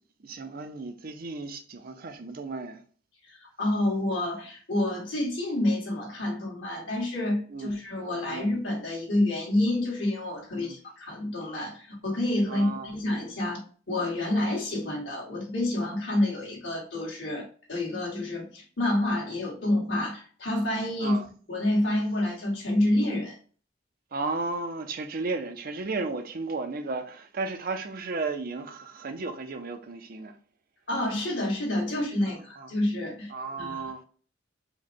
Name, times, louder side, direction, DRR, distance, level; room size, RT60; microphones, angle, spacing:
voice 1, 0.2-2.8 7.5-7.8 8.2-8.6 10.5-10.8 12.5-12.9 21.0-21.2 24.1-30.4 32.2-32.7 33.3-34.0, right 3 dB, 50° right, 0.6 m, -34 dB
voice 2, 3.3-13.6 13.9-21.2 21.5-23.3 30.9-33.3 33.6-33.8, left 1 dB, 70° left, 2.1 m, -28 dB
5.0 x 2.2 x 4.3 m
head